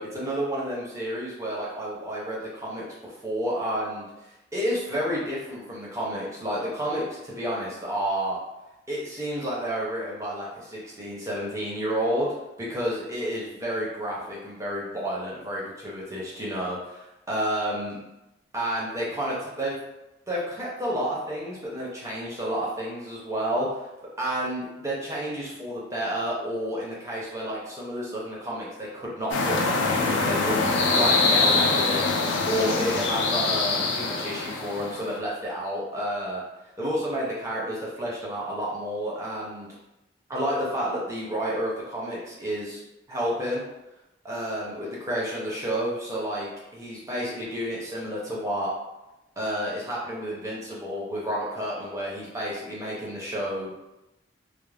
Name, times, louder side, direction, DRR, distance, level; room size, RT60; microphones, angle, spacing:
voice 1, 0.0-8.4 8.9-18.0 18.5-19.8 20.3-23.7 24.2-32.0 32.5-36.4 36.8-39.7 40.3-42.8 43.1-43.6 44.2-48.7 49.4-53.7, equal, 15° right, -5 dB, 0.6 m, -30 dB
sound 1, 29.3-35.1, left 3 dB, 85° left, 0.4 m, -24 dB
2.4 x 2.0 x 3.2 m, 0.95 s
head